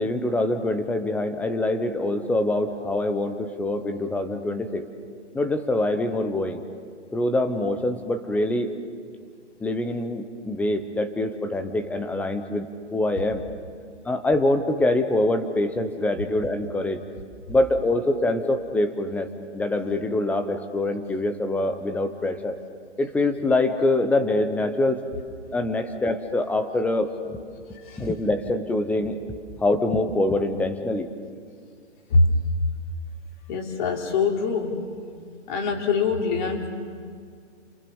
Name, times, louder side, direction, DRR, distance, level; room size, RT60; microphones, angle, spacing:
voice 1, 0.0-4.8 5.3-6.6 7.1-8.7 9.6-13.4 14.0-17.0 17.5-19.3 19.5-22.5 23.0-25.0 25.5-27.4 28.0-31.1, left 2 dB, 5° left, 8 dB, 0.8 m, -24 dB
voice 2, 27.7-28.1 32.1-32.4 33.5-35.0 35.5-36.7, left 3 dB, 40° left, 2 dB, 3.8 m, -24 dB
29.0 x 26.0 x 7.2 m, 2.2 s
hypercardioid pair, 145°, 36 cm